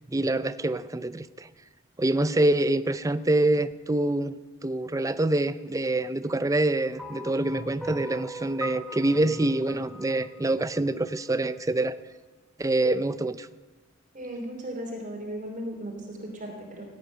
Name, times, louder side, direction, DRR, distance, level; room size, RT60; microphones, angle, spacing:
voice 1, 0.1-1.5 2.0-12.0 12.6-13.5, right 2 dB, 15° right, 0.5 m, -26 dB
sound 1, 7.0-11.3, equal, ahead, 1.4 m, -41 dB
voice 2, 14.1-16.9, right 1 dB, 40° right, 3.0 m, -36 dB
16.5 x 8.7 x 9.2 m
head